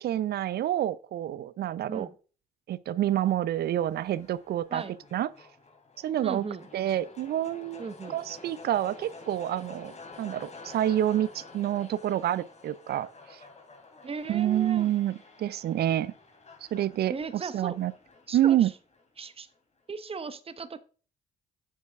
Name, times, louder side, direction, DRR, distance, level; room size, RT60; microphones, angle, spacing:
voice 1, 0.0-2.1 2.7-4.8 5.1-5.3 6.0-6.5 6.7-13.4 14.3-16.1 16.7-17.9 18.3-18.7, right 12 dB, 60° right, 0.5 m, -28 dB
sound 1, 3.5-19.6, left 3 dB, 35° left, 3.4 m, -50 dB
voice 2, 6.2-6.6 7.8-8.2 14.0-14.9 17.1-17.8 18.3-18.7 19.2-19.5 19.9-20.8, right 5 dB, 30° right, 0.9 m, -37 dB
9.4 x 7.5 x 3.5 m
hypercardioid pair, 45°, 19 cm